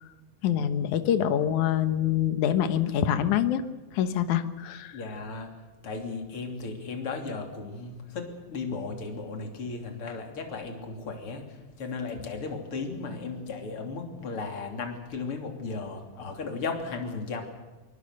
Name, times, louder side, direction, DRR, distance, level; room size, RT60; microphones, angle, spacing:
voice 1, 0.4-3.6 3.9-5.0, left 10 dB, 75° left, 10 dB, 2.6 m, -25 dB
voice 2, 4.9-5.5 5.8-17.4, left 4 dB, 45° left, 4 dB, 3.9 m, -35 dB
24.0 x 21.0 x 6.7 m, 1.2 s
omnidirectional pair, 3.6 m